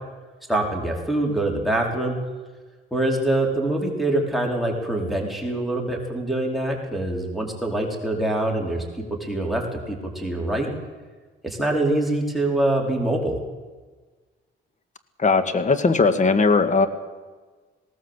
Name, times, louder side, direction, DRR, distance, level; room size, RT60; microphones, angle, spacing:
voice 1, 0.5-2.1 2.9-8.8 9.2-10.7 11.4-13.4, right 1 dB, ahead, 1 dB, 4.8 m, -24 dB
voice 2, 15.2-16.9, left 4 dB, 40° left, 10 dB, 2.1 m, -19 dB
19.5 x 18.0 x 8.3 m, 1.4 s
cardioid pair, 90°, 20 cm